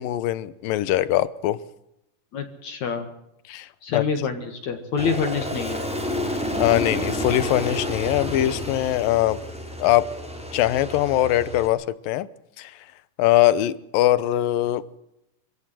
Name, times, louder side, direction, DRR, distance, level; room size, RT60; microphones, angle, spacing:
voice 1, 0.0-1.6 3.5-4.1 6.3-9.4 9.8-10.1 10.5-12.3 12.6-12.7 13.2-14.8, left 14 dB, 85° left, 17 dB, 2.7 m, -22 dB
voice 2, 2.3-3.1 3.8-5.8, left 6 dB, 60° left, 6 dB, 3.0 m, -27 dB
Aircraft, 5.0-11.7, left 1 dB, ahead, 3.5 m, -30 dB
26.0 x 16.5 x 7.7 m, 0.83 s
omnidirectional pair, 3.9 m